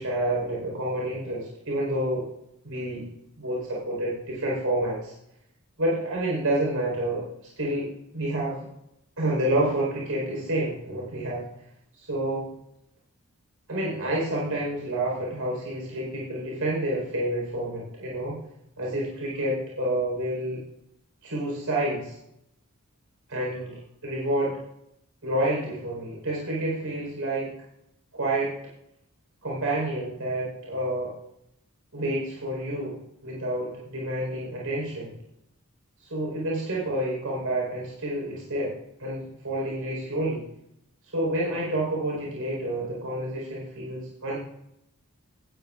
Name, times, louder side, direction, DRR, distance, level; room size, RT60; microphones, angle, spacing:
voice 1, 0.0-2.3 2.6-3.1 3.4-5.1 5.8-7.3 7.6-8.7 9.2-11.5 12.0-12.5 13.7-18.4 18.8-20.6 21.2-22.2 23.3-24.6 25.2-27.5 28.1-28.6 29.4-31.2 31.9-35.1 36.0-40.4 41.1-44.4, right 1 dB, 80° right, -4 dB, 4.6 m, -29 dB
17.0 x 13.5 x 2.5 m, 0.82 s
head